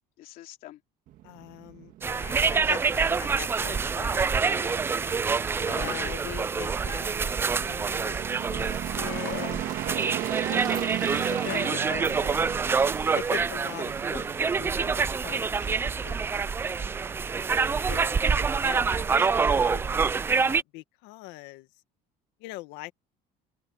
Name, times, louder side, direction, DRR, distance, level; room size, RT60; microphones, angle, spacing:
voice 1, 0.2-0.8 5.6-6.0 9.2-9.5 11.5-12.0 17.5-17.9, left 14 dB, 55° left, 2.9 m, -41 dB
sound 1, 1.1-20.4, right 13 dB, 50° right, 1.9 m, -38 dB
voice 2, 1.2-4.8 5.6-9.6 9.8-10.0 10.5-10.9 11.4-12.7 13.1-14.9 15.2-16.3 17.9-21.7 22.4-22.9, left 19 dB, 85° left, 1.7 m, -42 dB
sound 2, 2.0-20.6, right 5 dB, 15° right, 0.3 m, -26 dB
open air
cardioid pair, 170°, 17 cm